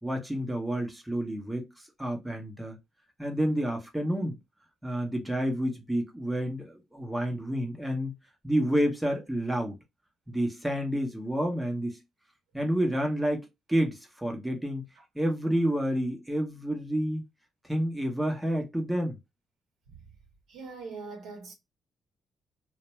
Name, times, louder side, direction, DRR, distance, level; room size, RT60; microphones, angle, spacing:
voice 1, 0.0-1.7 2.0-2.8 3.2-4.4 4.8-8.1 8.4-9.8 10.3-12.0 12.5-13.4 13.7-14.8 15.1-17.2 17.7-19.2, equal, 5° right, 0.9 m, -29 dB
voice 2, 20.5-21.5, right 4 dB, 80° right, 0.9 m, -42 dB
2.5 x 2.1 x 3.1 m
cardioid pair, 90°, 0 cm